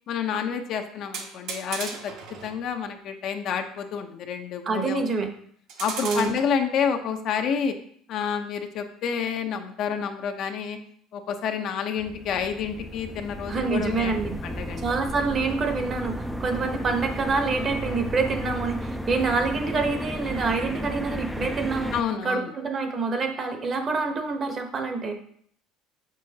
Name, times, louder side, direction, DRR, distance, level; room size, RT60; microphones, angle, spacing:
voice 1, 0.1-2.1 2.4-5.0 5.8-7.7 8.1-10.8 11.1-14.8 21.9-22.5, left 7 dB, 55° left, 6 dB, 0.7 m, -29 dB
sound 1, 1.1-2.6 5.7-6.4, right 5 dB, 70° right, 1.3 m, -35 dB
voice 2, 4.6-5.3 6.0-6.3 13.5-14.3 14.8-22.0 22.2-25.1, right 4 dB, 35° right, 6 dB, 1.0 m, -26 dB
sound 2, 12.0-22.0, equal, ahead, 0.4 m, -33 dB
6.2 x 6.1 x 2.9 m, 0.62 s
cardioid pair, 125°, 0 cm